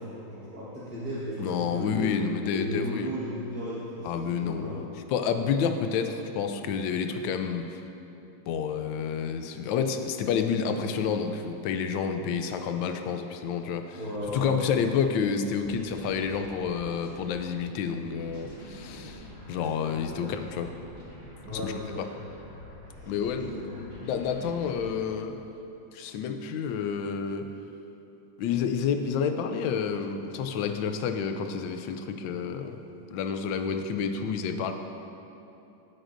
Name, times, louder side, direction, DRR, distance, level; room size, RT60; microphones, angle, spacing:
voice 1, 0.0-2.2 2.5-4.8 13.9-14.7 20.1-20.3 21.4-22.1 23.0-23.2 23.5-23.8, equal, 50° right, -10 dB, 1.8 m, -35 dB
voice 2, 1.4-3.2 4.0-4.9 5.1-7.8 8.5-14.0 14.3-19.2 19.5-20.7 21.5-21.7 22.0-22.1 23.1-25.4 25.9-27.5 28.4-32.8 33.1-34.7, left 6 dB, 75° left, 7 dB, 1.3 m, -29 dB
sound 1, 14.2-14.5 15.6-17.5 18.2-24.9, left 1 dB, 55° left, 2.9 m, -46 dB
17.0 x 6.2 x 2.6 m, 2.8 s
omnidirectional pair, 2.2 m